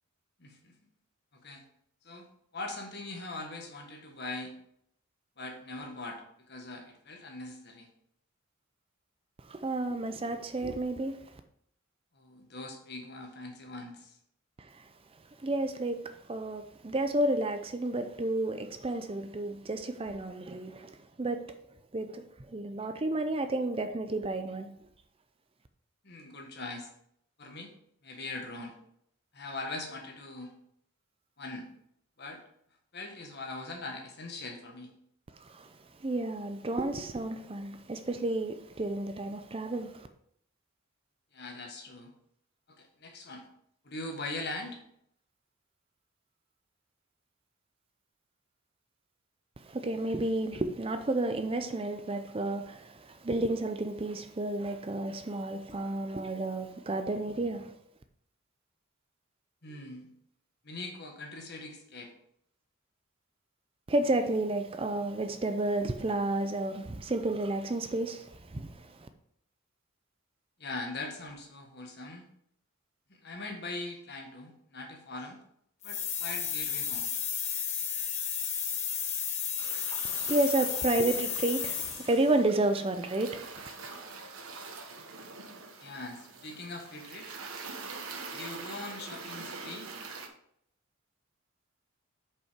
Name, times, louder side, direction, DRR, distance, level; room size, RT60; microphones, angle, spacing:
voice 1, 0.4-0.7 1.3-1.6 2.0-2.3 2.5-4.5 5.4-7.9 12.1-14.2 26.0-26.9 27.4-27.7 28.0-28.8 29.3-30.5 31.4-31.7 32.2-32.4 32.9-34.9 41.3-42.1 42.7-43.4 43.8-44.8 59.6-60.1 60.6-62.1 70.6-72.2 73.2-75.4 75.8-77.1 85.8-87.4 88.3-89.9, left 2 dB, 50° left, 1.6 m, -41 dB
voice 2, 9.4-11.3 14.6-14.9 15.4-21.5 21.9-24.7 35.3-35.7 36.0-40.1 49.6-57.7 63.9-69.1 80.0-83.7, right 2 dB, 25° right, 0.5 m, -31 dB
sound 1, 75.8-82.3, left 7 dB, 35° left, 1.0 m, -33 dB
sound 2, 79.6-90.3, right 4 dB, 85° right, 1.1 m, -44 dB
7.5 x 5.3 x 5.1 m
head